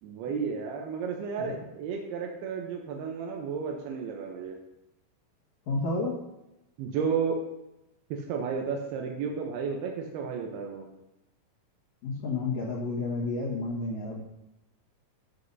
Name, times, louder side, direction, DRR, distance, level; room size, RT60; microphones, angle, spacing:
voice 1, 0.0-4.5 6.8-7.4 8.1-10.9, right 6 dB, 90° right, 1 dB, 2.8 m, -32 dB
voice 2, 5.7-6.2 12.0-14.2, left 3 dB, 55° left, -6 dB, 2.5 m, -31 dB
13.0 x 7.8 x 2.7 m, 0.92 s
omnidirectional pair, 4.4 m